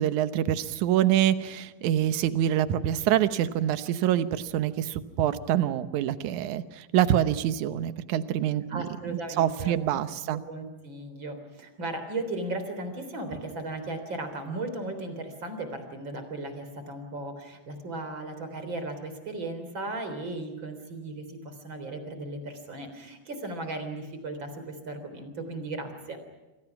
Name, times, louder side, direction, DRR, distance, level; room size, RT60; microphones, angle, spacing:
voice 1, 0.0-10.4, right 11 dB, 70° right, 11 dB, 2.3 m, -26 dB
voice 2, 8.7-9.8 10.3-26.2, right 2 dB, 35° right, 8 dB, 4.0 m, -36 dB
29.0 x 24.5 x 6.0 m, 1.1 s
omnidirectional pair, 3.9 m